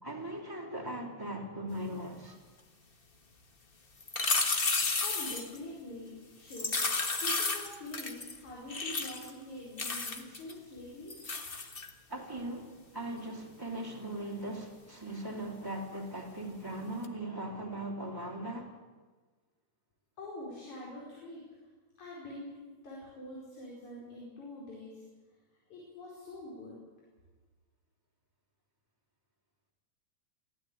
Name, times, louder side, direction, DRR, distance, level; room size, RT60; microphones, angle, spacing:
voice 1, 0.0-2.4 12.1-18.8, right 1 dB, 5° right, 2.8 m, -39 dB
sound 1, 4.0-5.6 6.5-8.4 8.7-9.3 9.8-10.5 11.1-11.9 17.0-17.1, left 3 dB, 35° left, 0.9 m, -32 dB
voice 2, 5.0-11.1 20.2-21.5 22.0-25.0 25.7-26.8, left 1 dB, 80° left, 6.2 m, -45 dB
23.0 x 16.0 x 8.6 m
omnidirectional pair, 3.3 m